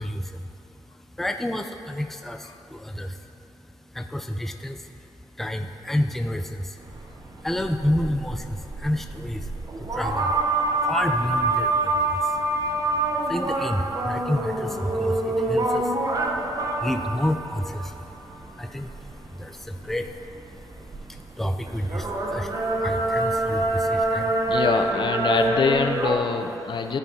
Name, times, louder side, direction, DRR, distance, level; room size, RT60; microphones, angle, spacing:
voice 1, 0.0-24.6, left 1 dB, 5° left, 6 dB, 0.4 m, -31 dB
sound 1, 6.8-26.2, right 2 dB, 40° right, 0.8 m, -27 dB
voice 2, 24.5-27.0, left 5 dB, 55° left, 6 dB, 0.5 m, -24 dB
13.0 x 5.4 x 2.8 m, 2.9 s
cardioid pair, 55°, 9 cm